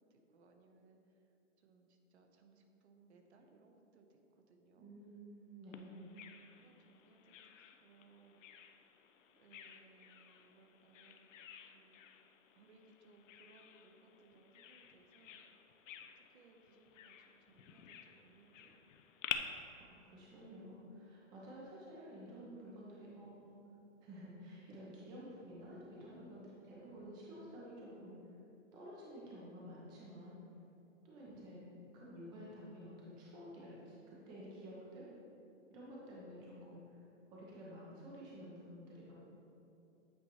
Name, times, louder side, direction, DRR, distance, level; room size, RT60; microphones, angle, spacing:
voice 1, 0.0-4.9 6.0-8.7 9.4-11.3 11.6-12.0 12.5-15.7 16.2-18.8, right 3 dB, 60° right, 4 dB, 0.8 m, -66 dB
voice 2, 4.8-6.1 19.8-23.5 24.0-28.1 28.7-30.4 31.0-31.6 31.9-35.1 35.7-36.8 37.3-39.1, equal, 10° right, -5 dB, 0.5 m, -51 dB
Bird vocalization bird call bird song, 5.7-19.4, left 11 dB, 75° left, 0.6 m, -51 dB
8.5 x 4.2 x 2.9 m, 2.8 s
hypercardioid pair, 145°, 38 cm